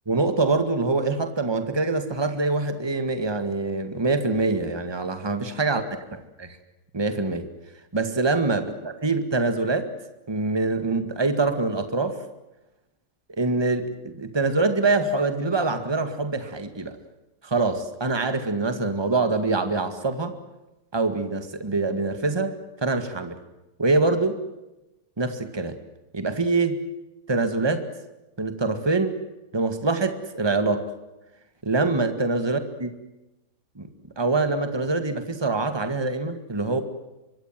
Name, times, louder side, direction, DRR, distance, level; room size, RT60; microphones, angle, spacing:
voice 1, 0.1-6.6 6.9-7.5 7.9-9.9 10.3-12.2 13.3-17.0 17.4-20.3 20.9-23.4 23.8-24.4 25.2-25.8 26.1-26.8 27.3-27.9 28.4-29.2 29.5-30.9 31.6-32.9 33.8-33.9 34.2-36.8, right 3 dB, 15° right, 9 dB, 2.0 m, -24 dB
24.5 x 24.0 x 7.6 m, 0.98 s
omnidirectional pair, 1.9 m